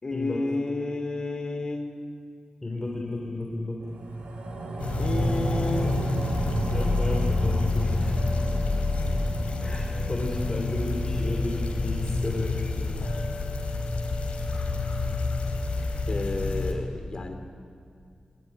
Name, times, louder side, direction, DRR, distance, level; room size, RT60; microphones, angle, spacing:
voice 1, 0.0-1.8 5.0-6.0 16.1-17.3, left 2 dB, 35° left, 6 dB, 3.4 m, -31 dB
voice 2, 2.6-3.8 6.7-8.5 9.6-12.9, left 2 dB, 20° left, -1 dB, 3.7 m, -32 dB
sound 1, 3.8-14.4 14.8-14.9, right 1 dB, 80° right, 5.4 m, -33 dB
sound 2, 4.8-16.7, left 3 dB, 70° left, 4.5 m, -28 dB
26.0 x 23.0 x 10.0 m, 2.3 s
wide cardioid pair, 130°, 2 cm